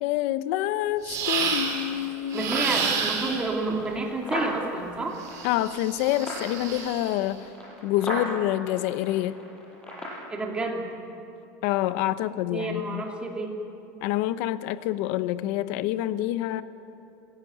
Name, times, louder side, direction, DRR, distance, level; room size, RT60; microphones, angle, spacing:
voice 1, 0.0-2.7 5.4-7.4 7.8-9.4 11.6-13.0 14.0-16.6, left 14 dB, 65° left, 13 dB, 1.0 m, -27 dB
sound 1, 1.0-1.9 2.3-3.6 5.2-7.1, right 6 dB, 45° right, 4.5 m, -30 dB
sound 2, 1.2-10.2, left 1 dB, 10° left, 6.8 m, -38 dB
voice 2, 2.3-5.2 10.3-10.9 12.5-13.6, right 2 dB, 15° right, 0 dB, 3.1 m, -30 dB
27.0 x 16.0 x 9.5 m, 2.7 s
cardioid pair, 155°, 8 cm